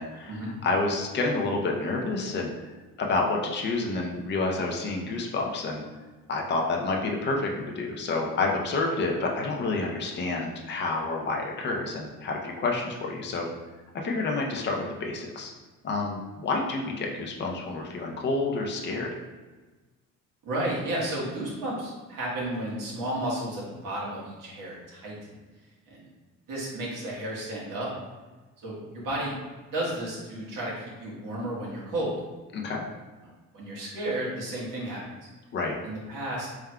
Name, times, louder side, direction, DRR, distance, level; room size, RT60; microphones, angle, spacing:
voice 1, 0.0-5.8 6.3-13.5 13.9-15.5 15.8-19.1 32.5-32.8 35.5-35.8, left 3 dB, 35° left, 0 dB, 0.6 m, -29 dB
voice 2, 20.4-25.4 25.9-26.1 26.5-27.9 28.6-29.3 29.7-32.1 33.5-35.1 35.8-36.5, right 1 dB, 70° right, -6 dB, 1.5 m, -32 dB
4.5 x 3.6 x 2.2 m, 1.2 s
cardioid pair, 120°, 33 cm